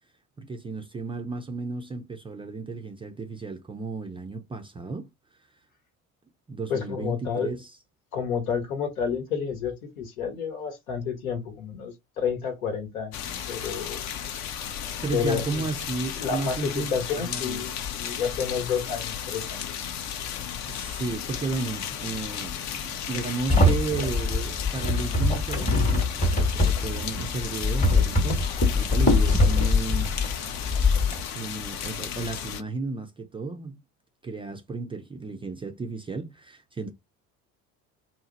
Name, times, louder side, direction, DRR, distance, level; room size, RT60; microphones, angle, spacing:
voice 1, 0.4-5.1 6.5-7.7 15.0-17.7 20.6-30.1 31.4-33.8 34.2-36.9, right 3 dB, 15° right, 0.4 m, -34 dB
voice 2, 6.7-7.5 8.1-14.1 15.1-15.7 16.2-19.6, left 6 dB, 75° left, 1.1 m, -30 dB
sound 1, 13.1-32.6, left 9 dB, 40° left, 0.5 m, -34 dB
sound 2, 23.5-31.2, left 2 dB, 15° left, 1.0 m, -23 dB
2.8 x 2.0 x 3.9 m
figure-of-eight pair, 60°, 42 cm